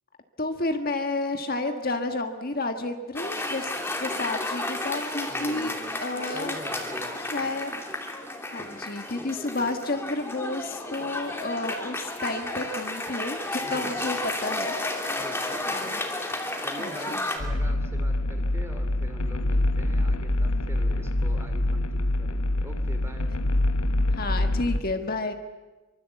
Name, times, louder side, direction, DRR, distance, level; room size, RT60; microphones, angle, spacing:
voice 1, 0.4-3.7 4.0-5.7 6.0-6.6 7.3-7.8 8.5-14.2 14.4-14.8 15.7-16.0 16.8-17.2 24.1-25.3, left 2 dB, 40° left, 6 dB, 1.5 m, -31 dB
Cheering / Applause, 3.2-17.4, left 2 dB, 10° left, 2.8 m, -32 dB
voice 2, 5.3-5.9 6.3-7.5 13.6-14.1 15.2-15.8 16.6-23.3, equal, 10° right, 7 dB, 2.7 m, -43 dB
sound 1, 17.4-24.8, left 1 dB, 85° left, 1.1 m, -25 dB
25.5 x 24.5 x 8.3 m, 1.2 s
head